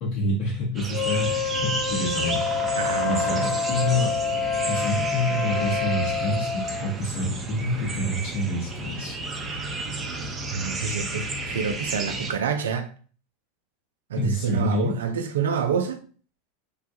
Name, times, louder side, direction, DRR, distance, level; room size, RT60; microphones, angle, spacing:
voice 1, 0.0-2.7 3.1-4.1 4.7-9.2 14.2-14.9, left 1 dB, 60° left, 1.4 m, -27 dB
sound 1, 0.8-12.3, right 3 dB, 30° right, 0.7 m, -32 dB
Wind instrument woodwind instrument, 0.9-6.5, left 7 dB, 35° left, 0.5 m, -31 dB
Wind instrument woodwind instrument 2, 2.3-7.0, left 5 dB, ahead, 0.7 m, -28 dB
voice 2, 2.7-3.7 10.5-12.9 14.1-16.0, right 6 dB, 80° right, 0.4 m, -28 dB
3.2 x 2.3 x 2.7 m
hypercardioid pair, 95°, 0 cm